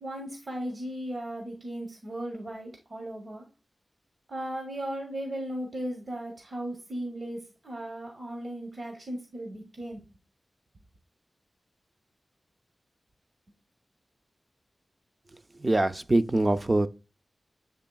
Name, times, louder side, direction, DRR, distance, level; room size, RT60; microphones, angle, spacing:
voice 1, 0.0-3.5 4.3-10.1, right 1 dB, 50° right, 0.8 m, -36 dB
voice 2, 15.6-16.9, right 2 dB, 25° right, 0.3 m, -23 dB
7.5 x 3.1 x 2.2 m
wide cardioid pair, 115°, 0 cm